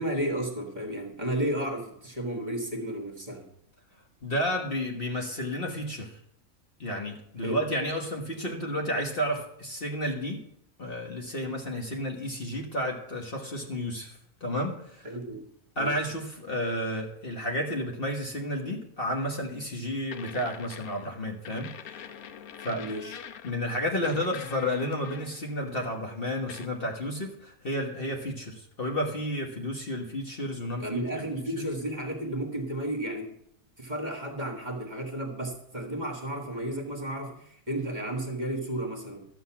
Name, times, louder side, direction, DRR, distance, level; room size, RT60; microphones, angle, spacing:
voice 1, 0.0-3.5 7.4-7.6 15.0-15.5 15.8-15.9 22.8-23.2 30.8-33.3 33.8-39.3, right 1 dB, 30° right, 2 dB, 1.7 m, -33 dB
voice 2, 4.2-6.2 6.8-10.4 10.8-15.1 15.8-22.1 22.6-22.8 23.4-31.0 31.3-31.7, equal, 40° left, 1 dB, 1.5 m, -32 dB
sound 1, 19.2-19.4 20.1-21.2 21.5-23.7 24.0-25.6 26.5-26.7, left 9 dB, 75° left, 1.2 m, -44 dB
12.0 x 8.0 x 5.8 m, 0.70 s
omnidirectional pair, 1.6 m